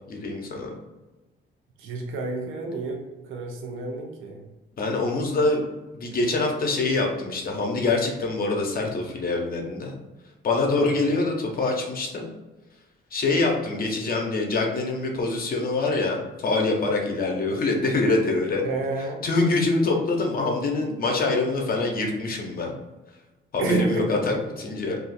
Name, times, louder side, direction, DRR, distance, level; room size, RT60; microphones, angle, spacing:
voice 1, 0.0-0.8 4.8-5.6 5.9-10.0 10.4-12.3 13.1-18.6 19.2-22.7 23.5-25.0, left 3 dB, 50° left, 1 dB, 0.9 m, -25 dB
voice 2, 1.8-4.4 10.7-11.0 18.6-19.2 23.6-24.4, right 3 dB, 85° right, 1 dB, 0.6 m, -30 dB
2.7 x 2.4 x 4.1 m, 1.1 s
cardioid pair, 90°, 20 cm